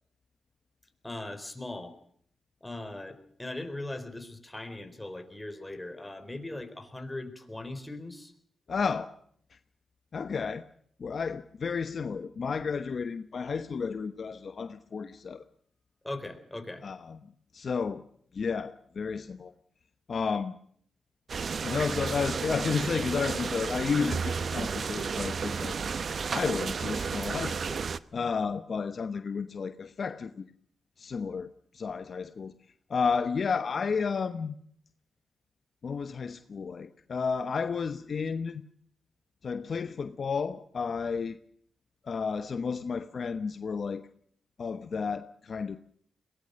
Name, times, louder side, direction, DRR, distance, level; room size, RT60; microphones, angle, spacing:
voice 1, 1.0-2.0 2.6-8.3 16.0-16.8, left 2 dB, 15° left, 9 dB, 4.1 m, -39 dB
voice 2, 8.7-9.1 10.1-10.6 11.0-15.4 16.8-17.2 17.5-18.0 18.3-19.5 20.1-20.5 21.6-25.8 26.3-27.8 28.1-30.5 31.0-32.5 32.9-34.5 35.8-38.6 39.4-41.4 42.0-44.0 44.6-45.8, left 5 dB, 55° left, 10 dB, 1.0 m, -32 dB
sound 1, 21.3-28.0, right 5 dB, 60° right, 0.9 m, -32 dB
22.0 x 18.0 x 6.6 m, 0.64 s
cardioid pair, 65°, 0 cm